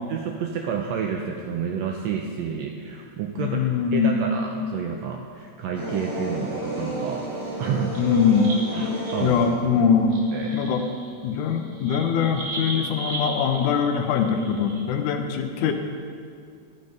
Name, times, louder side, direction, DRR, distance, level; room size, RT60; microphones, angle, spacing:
voice 1, 0.1-3.6 3.9-7.2 7.6-7.9 8.7-9.4 10.3-10.6, right 7 dB, 85° right, 2 dB, 1.6 m, -30 dB
voice 2, 3.4-4.2 8.0-8.6 9.2-10.1 10.5-10.9 11.2-15.7, left 6 dB, 80° left, 6 dB, 2.1 m, -22 dB
sound 1, 5.7-10.7, right 1 dB, 10° right, 2.7 m, -32 dB
sound 2, 7.8-9.3 9.8-14.8, right 2 dB, 45° right, 1.5 m, -36 dB
12.0 x 6.7 x 5.3 m, 2.2 s
omnidirectional pair, 3.6 m